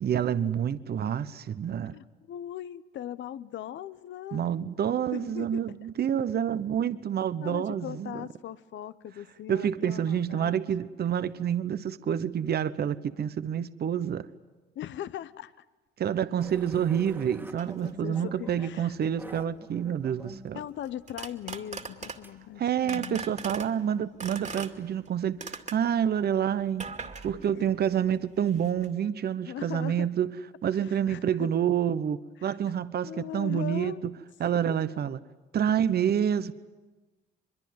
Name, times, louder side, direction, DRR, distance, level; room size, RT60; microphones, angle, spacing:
voice 1, 0.0-1.9 4.3-8.2 9.5-14.3 16.0-20.6 22.6-26.8 27.2-30.4 30.6-34.1 34.4-35.2 35.5-36.5, right 9 dB, 55° right, 1.0 m, -28 dB
voice 2, 1.9-4.4 5.1-5.6 7.4-10.6 14.7-15.6 16.4-16.5 17.8-18.9 19.4-19.6 20.5-23.5 27.3-27.9 29.4-30.1 30.7-31.5 32.4-32.7 33.0-34.0 34.7-34.8, left 11 dB, 70° left, 0.9 m, -40 dB
sound 1, 16.4-22.4, right 2 dB, 10° right, 1.9 m, -48 dB
sound 2, 17.0-17.1 17.6-17.9 18.9-19.2 20.8-22.4 22.9-23.7 24.2-25.1 25.4-25.9 26.8-28.1 28.4-28.9, right 4 dB, 35° right, 2.4 m, -40 dB
23.5 x 23.0 x 9.4 m
cardioid pair, 90°, 20 cm